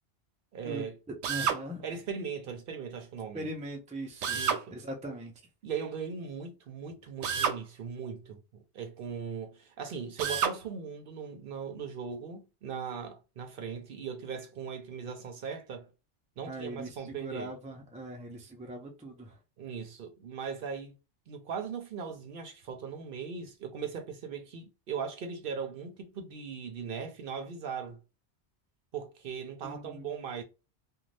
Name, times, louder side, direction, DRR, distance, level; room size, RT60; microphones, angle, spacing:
voice 1, 0.5-1.0 1.8-3.5 4.3-4.8 5.6-15.9 16.4-17.5 19.6-20.9 21.3-28.0 28.9-30.4, right 6 dB, 60° right, 0.7 m, -39 dB
Drill, 1.2-1.6 4.2-4.6 7.2-7.6 10.2-10.6, right 7 dB, 90° right, 0.9 m, -29 dB
voice 2, 1.3-1.8 3.3-5.3 16.5-19.4 29.6-30.0, right 1 dB, 10° right, 0.3 m, -40 dB
2.6 x 2.2 x 3.1 m
omnidirectional pair, 1.1 m